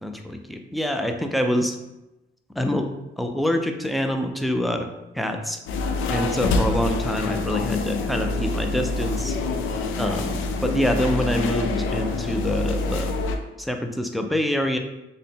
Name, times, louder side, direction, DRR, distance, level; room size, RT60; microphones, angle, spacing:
voice 1, 0.0-1.8 2.6-2.9 3.2-4.9 5.1-5.6 6.1-9.4 10.0-13.1 13.6-14.8, equal, ahead, 5 dB, 0.3 m, -26 dB
sound 1, 5.7-13.4, left 3 dB, 80° left, 0.4 m, -26 dB
3.7 x 2.1 x 3.8 m, 0.97 s
cardioid pair, 90°, 20 cm